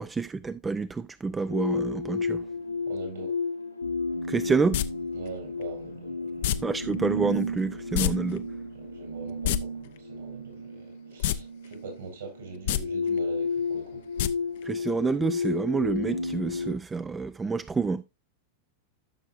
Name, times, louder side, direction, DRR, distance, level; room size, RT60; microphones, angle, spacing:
voice 1, 0.0-2.4 4.3-4.8 6.6-8.4 14.6-18.0, right 4 dB, 15° right, 0.4 m, -28 dB
sound 1, 1.5-16.8, left 3 dB, 90° left, 1.7 m, -32 dB
voice 2, 2.9-3.4 5.1-6.5 8.7-14.0, right 4 dB, 65° right, 5.2 m, -43 dB
sound 2, 4.7-4.9 6.4-6.6 7.9-8.1 8.4-8.5 9.3-9.6 11.2-11.4 11.7-11.8 12.6-12.8 14.2-14.3 14.6-14.7, left 12 dB, 55° left, 0.6 m, -25 dB
13.5 x 6.5 x 2.5 m
figure-of-eight pair, 90°, 0 cm